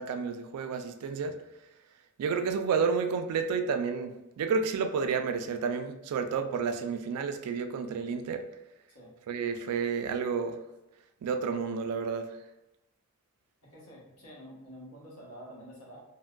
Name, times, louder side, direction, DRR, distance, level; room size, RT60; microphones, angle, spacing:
voice 1, 0.0-1.4 2.2-8.4 9.3-10.6 11.2-12.3, right 5 dB, 90° right, 12 dB, 0.3 m, -30 dB
voice 2, 13.6-16.0, equal, 85° left, -5 dB, 1.1 m, -48 dB
3.5 x 2.1 x 2.2 m, 0.93 s
head